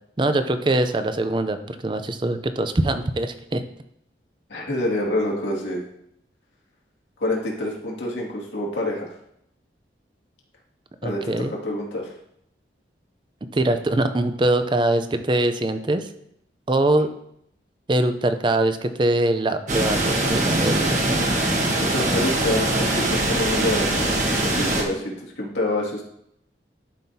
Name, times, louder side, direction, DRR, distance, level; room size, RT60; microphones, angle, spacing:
voice 1, 0.2-3.6 11.0-11.5 13.5-16.1 16.7-17.1 17.9-21.4, right 2 dB, 25° right, 9 dB, 0.5 m, -23 dB
voice 2, 4.5-5.8 7.2-9.1 11.0-12.1 21.8-26.0, left 1 dB, 85° left, -3 dB, 2.1 m, -27 dB
sound 1, 19.7-24.8, right 1 dB, 40° right, 1.2 m, -22 dB
11.5 x 5.6 x 2.7 m, 0.75 s
head